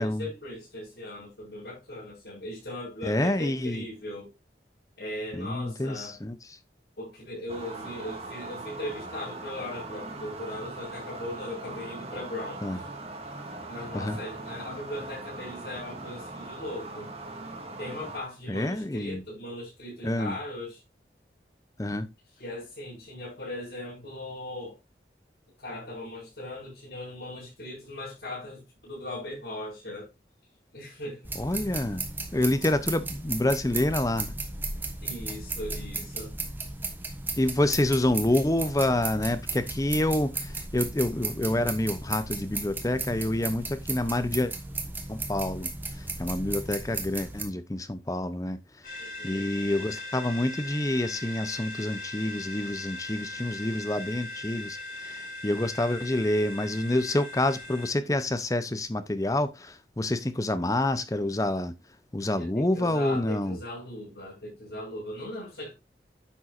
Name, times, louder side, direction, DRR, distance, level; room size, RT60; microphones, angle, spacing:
voice 1, 0.0-4.3 5.0-6.2 7.0-12.8 13.7-17.1 17.8-20.8 22.4-24.8 25.6-30.1 30.7-31.2 35.0-36.4 37.3-37.4 38.1-38.3 49.0-49.5 62.4-65.7, left 1 dB, 70° left, 5.3 m, -39 dB
voice 2, 3.0-3.8 5.3-6.4 12.6-12.8 13.9-14.2 18.5-19.2 20.0-20.4 21.8-22.1 31.4-32.0 32.3-34.3 37.4-44.5 45.1-45.7 46.0-48.6 49.2-61.7 62.1-63.6, left 1 dB, 20° left, 0.6 m, -27 dB
sound 1, 7.5-18.2, right 2 dB, 35° right, 1.8 m, -40 dB
sound 2, 31.3-47.4, right 3 dB, 10° right, 1.2 m, -35 dB
sound 3, 48.8-57.9, left 2 dB, 50° left, 3.4 m, -39 dB
10.0 x 7.6 x 2.5 m
head